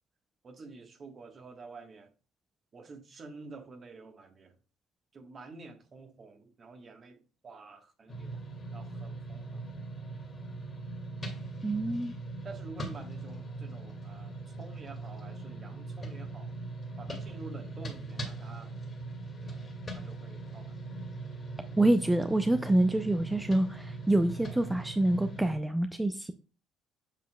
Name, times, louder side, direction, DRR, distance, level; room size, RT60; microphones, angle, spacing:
voice 1, 0.4-2.1 2.7-4.6 5.1-8.4 8.7-9.6 12.4-16.5 17.0-18.7 19.4-19.6 19.9-20.7, right 3 dB, 40° right, 5 dB, 1.4 m, -49 dB
sound 1, 8.1-25.6, right 2 dB, 35° left, 2.0 m, -40 dB
voice 2, 11.6-12.1 21.8-26.3, right 1 dB, 10° right, 8 dB, 0.5 m, -26 dB
7.3 x 5.6 x 2.3 m, 0.34 s
hypercardioid pair, 50°, 0 cm